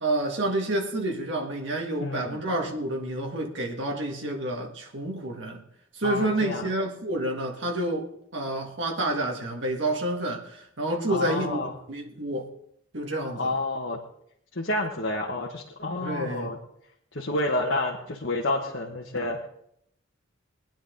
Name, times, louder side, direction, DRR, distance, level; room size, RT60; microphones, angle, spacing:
voice 1, 0.0-5.6 6.0-11.6 11.9-12.5 12.9-13.5 16.0-16.5, right 1 dB, 60° right, 1.9 m, -29 dB
voice 2, 2.0-2.4 6.0-6.7 11.1-11.7 13.3-14.0 14.5-16.6 17.1-19.5, left 2 dB, 60° left, 1.4 m, -29 dB
20.0 x 10.0 x 3.9 m
head